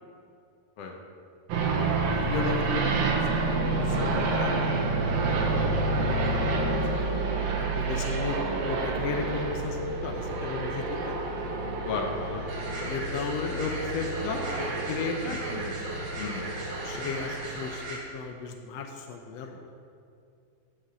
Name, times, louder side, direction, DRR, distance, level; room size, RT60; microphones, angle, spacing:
sound 1, 1.5-17.7, right 3 dB, 85° right, 3.1 m, -29 dB
voice 1, 2.1-3.2 3.5-4.7 6.2-11.2 12.8-15.4 16.2-16.3 16.8-19.6, left 5 dB, 85° left, 4 dB, 1.4 m, -35 dB
voice 2, 5.4-5.8 11.8-12.4 15.5-15.7 16.2-16.5, left 4 dB, 60° left, 2 dB, 1.7 m, -35 dB
sound 2, 12.5-18.0, right 2 dB, 45° right, 2.3 m, -38 dB
11.0 x 6.6 x 8.1 m, 2.4 s
omnidirectional pair, 4.0 m